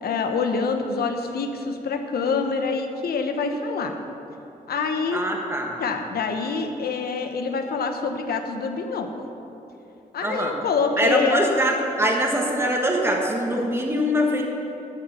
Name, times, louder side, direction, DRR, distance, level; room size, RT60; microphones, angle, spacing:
voice 1, 0.0-3.9 4.7-5.2 5.8-9.1 10.1-11.5, left 4 dB, 85° left, 5 dB, 1.1 m, -25 dB
voice 2, 5.1-5.7 10.2-10.5 11.0-14.4, equal, 15° right, 0 dB, 1.4 m, -23 dB
12.5 x 6.6 x 7.0 m, 2.9 s
cardioid pair, 100°, 15 cm